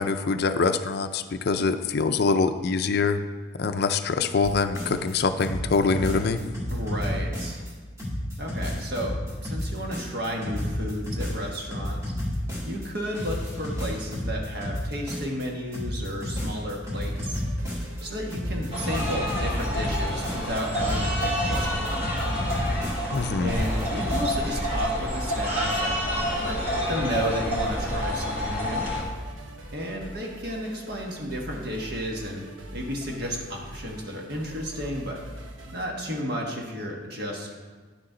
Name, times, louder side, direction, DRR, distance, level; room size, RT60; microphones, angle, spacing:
voice 1, 0.0-3.2 3.6-6.4 23.1-23.5, left 4 dB, 55° left, 9 dB, 0.4 m, -24 dB
sound 1, 4.4-5.1 5.4-7.7 8.0-12.9 13.1-15.5 15.7-18.0 18.3-23.2 23.5-24.3, left 1 dB, 15° right, 1.6 m, -31 dB
voice 2, 6.7-7.6 8.4-12.0 12.7-17.4 18.0-22.0 23.4-26.0 26.4-28.9 29.7-32.4 32.7-35.2 35.7-37.5, equal, 55° right, 0 dB, 1.4 m, -32 dB
sound 2, 16.9-35.9, right 1 dB, 80° right, 1.0 m, -43 dB
sound 3, 18.7-29.0, equal, 30° right, 1.7 m, -28 dB
9.8 x 6.9 x 3.9 m, 1.4 s
head